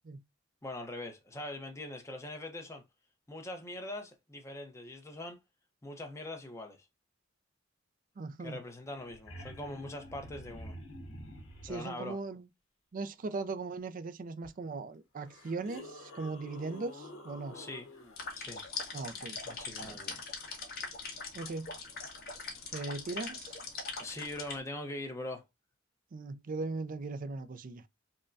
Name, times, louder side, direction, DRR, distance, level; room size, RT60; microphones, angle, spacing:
voice 1, 0.6-2.8 3.3-5.4 5.8-6.8 8.4-10.8 11.7-12.2 17.5-18.0 18.3-18.6 19.1-20.2 24.0-25.4, left 1 dB, 15° left, 0.7 m, -42 dB
voice 2, 8.2-8.6 11.6-12.4 12.9-17.6 18.9-19.4 19.8-20.0 21.3-21.7 22.7-23.5 26.1-27.8, right 3 dB, 45° right, 0.4 m, -39 dB
sound 1, 8.8-11.9 14.4-14.5 15.2-18.3 20.8-20.9, left 1 dB, 75° left, 1.1 m, -48 dB
sound 2, 18.2-24.6, left 4 dB, 50° left, 1.3 m, -42 dB
5.3 x 2.2 x 2.5 m
head